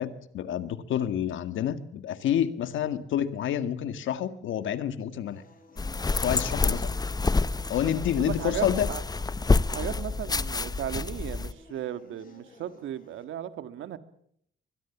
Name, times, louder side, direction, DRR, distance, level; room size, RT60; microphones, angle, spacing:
voice 1, 0.0-5.4 6.2-6.9 7.7-8.9, left 10 dB, 75° left, 12 dB, 1.9 m, -28 dB
sound 1, 5.3-13.2, left 3 dB, 45° left, 7.1 m, -53 dB
sound 2, 5.8-11.5, left 3 dB, 20° left, 0.8 m, -28 dB
voice 2, 8.2-9.0 9.7-14.0, right 11 dB, 80° right, 11 dB, 1.9 m, -36 dB
24.0 x 21.0 x 7.2 m, 0.69 s
cardioid pair, 90°, 20 cm